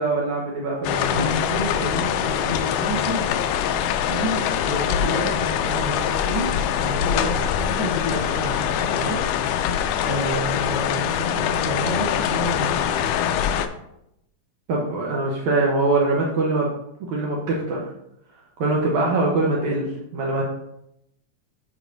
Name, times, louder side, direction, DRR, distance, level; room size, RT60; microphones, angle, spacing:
voice 1, 0.0-1.2 14.7-16.7 17.1-17.8 18.6-20.4, right 2 dB, 70° right, -2 dB, 2.1 m, -23 dB
sound 1, 0.8-13.7, left 9 dB, 80° left, 2.0 m, -23 dB
voice 2, 1.1-3.3 4.1-6.5 6.8-9.4 10.0-13.2, equal, 40° right, -3 dB, 2.0 m, -30 dB
10.0 x 5.2 x 2.6 m, 0.80 s
omnidirectional pair, 3.8 m